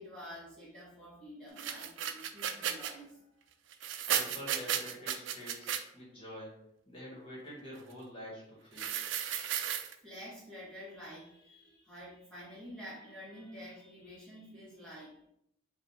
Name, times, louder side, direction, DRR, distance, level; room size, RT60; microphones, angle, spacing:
voice 1, 0.0-3.5 6.1-6.2 10.0-15.2, equal, 5° left, -10 dB, 1.7 m, -49 dB
sound 1, 1.6-2.9 3.7-5.8 8.8-9.9, right 9 dB, 75° right, 0.4 m, -34 dB
voice 2, 4.1-6.5 6.9-9.0, equal, 30° left, -4 dB, 1.6 m, -47 dB
4.9 x 2.6 x 3.5 m, 0.77 s
head